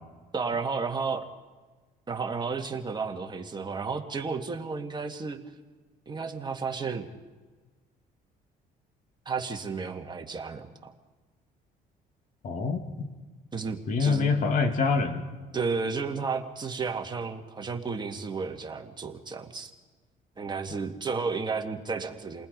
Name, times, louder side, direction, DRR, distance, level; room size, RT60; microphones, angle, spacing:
voice 1, 0.3-1.3 2.1-5.4 6.1-7.1 9.3-10.9 13.5-14.3 15.5-19.7 20.4-22.5, right 4 dB, 25° right, 3 dB, 2.0 m, -32 dB
voice 2, 12.4-13.1 13.9-15.2, left 4 dB, 50° left, 6 dB, 2.4 m, -25 dB
30.0 x 20.0 x 5.3 m, 1.3 s
cardioid pair, 110°, 17 cm